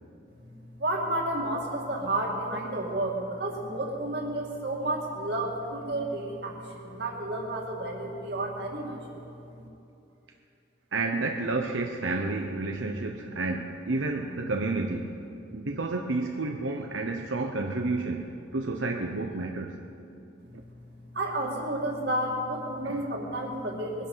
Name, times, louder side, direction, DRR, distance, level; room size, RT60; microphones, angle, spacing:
voice 1, 0.4-9.2 9.6-9.7 21.1-24.1, right 1 dB, 55° right, -1 dB, 2.6 m, -31 dB
voice 2, 10.9-15.1 15.5-19.7 22.8-23.0, right 3 dB, 90° right, 2 dB, 0.9 m, -30 dB
21.0 x 11.0 x 5.7 m, 2.7 s
head